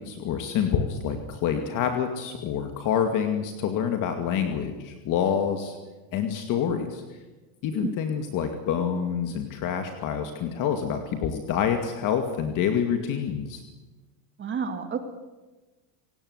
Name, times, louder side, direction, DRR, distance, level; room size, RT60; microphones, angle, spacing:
voice 1, 0.0-5.8 6.1-7.0 7.6-13.6, left 8 dB, 40° left, 6 dB, 2.4 m, -27 dB
voice 2, 14.4-15.0, right 6 dB, 25° right, 6 dB, 2.3 m, -30 dB
28.0 x 17.5 x 8.1 m, 1.2 s
cardioid pair, 155°, 46 cm